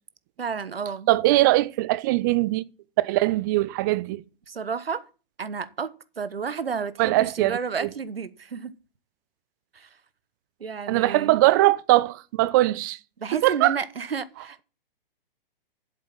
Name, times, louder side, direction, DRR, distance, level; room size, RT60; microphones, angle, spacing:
voice 1, 0.4-1.4 4.5-5.0 5.4-8.7 9.7-9.9 10.6-11.3 13.2-14.6, right 6 dB, 75° right, 1.2 m, -31 dB
voice 2, 1.1-2.6 3.0-4.2 7.0-7.9 10.9-13.0 13.4-13.8, right 18 dB, 20° right, 0.4 m, -21 dB
8.2 x 7.5 x 7.5 m
figure-of-eight pair, 120°, 29 cm